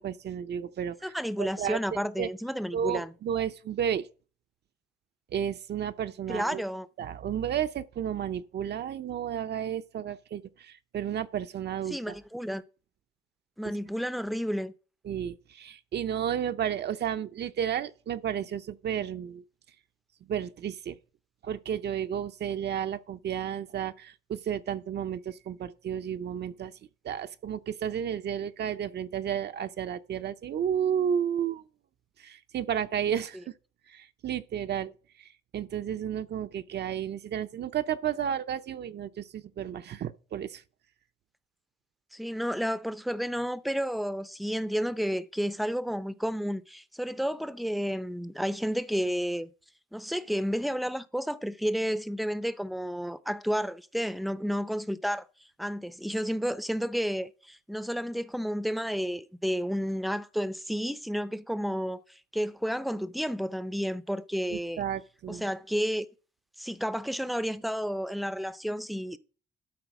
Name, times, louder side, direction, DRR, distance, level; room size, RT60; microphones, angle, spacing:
voice 1, 0.0-2.3 2.7-4.1 5.3-6.6 7.0-12.2 15.0-19.4 20.3-21.0 21.4-26.7 27.0-31.6 32.2-33.5 33.9-40.6 64.5-65.4, right 9 dB, 60° right, 0.7 m, -32 dB
voice 2, 1.0-3.1 6.3-6.9 11.9-12.6 13.6-14.7 42.1-49.5 49.9-55.3 55.6-64.8 65.3-66.1 66.6-69.2, equal, ahead, 0.6 m, -31 dB
12.0 x 4.4 x 5.9 m
cardioid pair, 90°, 20 cm